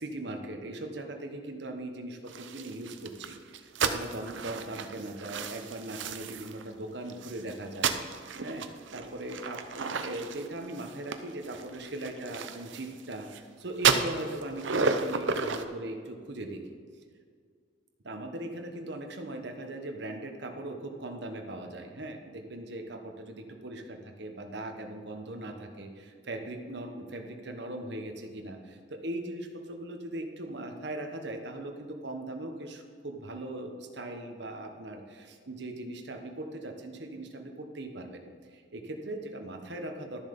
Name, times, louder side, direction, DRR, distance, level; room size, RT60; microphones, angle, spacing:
voice 1, 0.0-7.9 8.4-16.6 18.0-40.2, right 1 dB, 65° right, 4 dB, 1.2 m, -39 dB
sound 1, 2.3-6.6 7.1-13.4 13.8-15.6, right 5 dB, 80° right, 0.7 m, -32 dB
12.5 x 7.2 x 5.3 m, 2.1 s
head